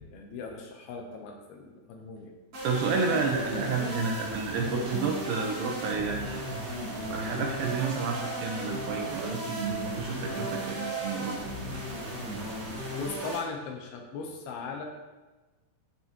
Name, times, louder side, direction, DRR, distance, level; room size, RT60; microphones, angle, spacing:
voice 1, 0.1-2.3 12.9-14.9, left 4 dB, 75° left, 2 dB, 2.8 m, -38 dB
sound 1, 2.5-13.4, equal, 40° right, 3.8 m, -36 dB
voice 2, 2.6-6.5 7.1-11.4, right 4 dB, 75° right, 1 dB, 2.4 m, -30 dB
Musical instrument, 5.7-11.0, right 8 dB, 60° right, 2.5 m, -42 dB
13.5 x 6.0 x 3.0 m, 1.2 s
omnidirectional pair, 4.7 m